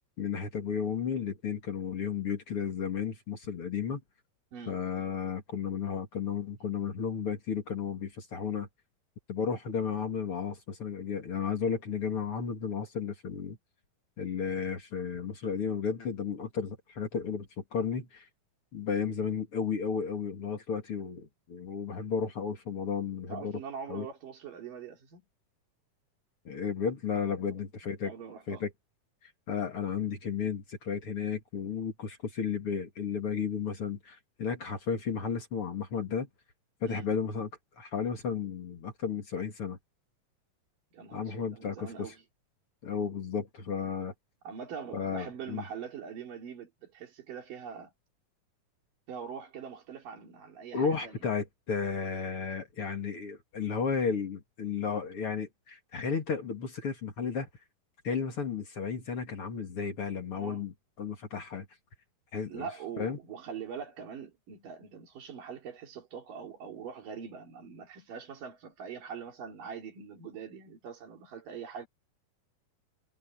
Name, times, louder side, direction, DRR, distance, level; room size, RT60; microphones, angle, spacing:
voice 1, 0.2-4.0 4.7-8.7 9.3-13.6 14.2-18.3 18.7-23.6 23.9-24.1 26.4-28.1 28.5-28.7 29.2-36.3 36.8-37.5 37.8-39.8 41.1-41.9 42.8-44.1 44.9-45.6 50.7-57.5 58.0-61.7 62.3-62.7 63.0-63.2, left 6 dB, 45° left, 2.8 m, -33 dB
voice 2, 23.3-25.2 27.5-27.6 28.0-28.6 36.9-37.1 40.9-42.2 44.4-47.9 49.1-51.2 60.3-60.6 62.5-71.9, right 7 dB, 85° right, 4.8 m, -43 dB
omnidirectional pair, 3.7 m